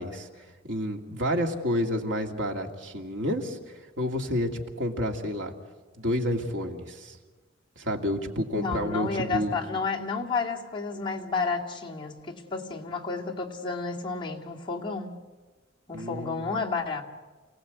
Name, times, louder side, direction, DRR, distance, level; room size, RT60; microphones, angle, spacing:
voice 1, 0.0-5.5 6.0-7.2 7.8-9.6 15.9-16.5, equal, 80° right, 2 dB, 2.5 m, -30 dB
voice 2, 8.5-15.2 15.9-17.0, left 4 dB, 25° left, -2 dB, 2.3 m, -31 dB
29.0 x 17.5 x 8.4 m, 1.3 s
head